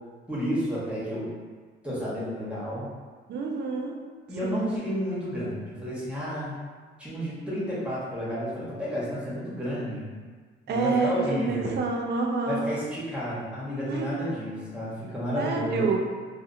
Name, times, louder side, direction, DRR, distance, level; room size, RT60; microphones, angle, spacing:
voice 1, 0.3-1.3 1.8-2.9 4.3-6.5 7.0-10.1 10.7-11.7 12.5-16.0, equal, 5° right, -8 dB, 0.9 m, -31 dB
voice 2, 3.3-4.0 4.4-4.8 10.7-12.7 13.9-14.5 15.3-16.0, right 4 dB, 55° right, 1 dB, 0.4 m, -28 dB
2.6 x 2.0 x 2.5 m, 1.5 s
cardioid pair, 90°, 20 cm